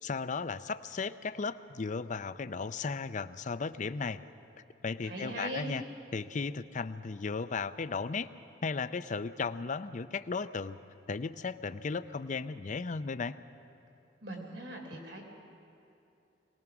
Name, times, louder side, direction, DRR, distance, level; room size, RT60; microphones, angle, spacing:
voice 1, 0.0-4.2 4.8-5.8 6.1-8.3 8.6-10.8 11.1-13.4, left 4 dB, 45° left, 13 dB, 0.5 m, -35 dB
voice 2, 5.0-5.7 14.2-15.2, right 2 dB, 80° right, 1 dB, 3.4 m, -40 dB
23.5 x 19.0 x 6.0 m, 2.7 s
head